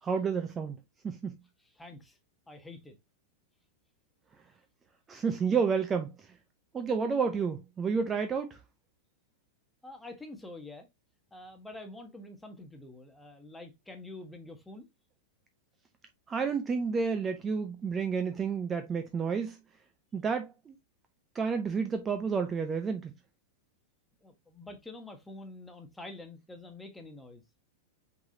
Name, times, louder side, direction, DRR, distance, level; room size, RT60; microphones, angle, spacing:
voice 1, 0.0-0.8 1.0-1.4 5.1-6.3 6.7-8.6 16.3-19.6 20.1-20.7 21.3-23.1, right 5 dB, 20° right, 0.6 m, -30 dB
voice 2, 1.6-2.2 2.5-3.0 9.8-10.9 11.3-14.9 24.2-27.4, left 2 dB, 5° left, 1.1 m, -47 dB
4.6 x 4.1 x 2.7 m
hypercardioid pair, 115°, 0 cm